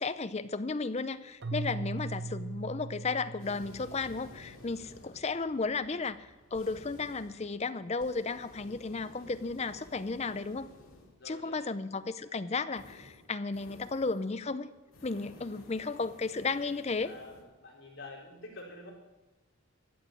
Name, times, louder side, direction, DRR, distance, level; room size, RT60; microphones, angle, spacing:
voice 1, 0.0-10.7 11.2-14.7 15.0-17.1, left 4 dB, 30° left, 13 dB, 0.5 m, -34 dB
Keyboard (musical), 1.4-4.5, right 2 dB, 50° right, 0.7 m, -39 dB
sound 1, 3.4-11.3 12.7-14.3 14.8-17.4, left 1 dB, 80° left, 2.6 m, -54 dB
voice 2, 11.2-11.7 17.0-18.9, left 2 dB, 55° left, -3 dB, 4.6 m, -48 dB
14.0 x 8.3 x 7.8 m, 1.1 s
head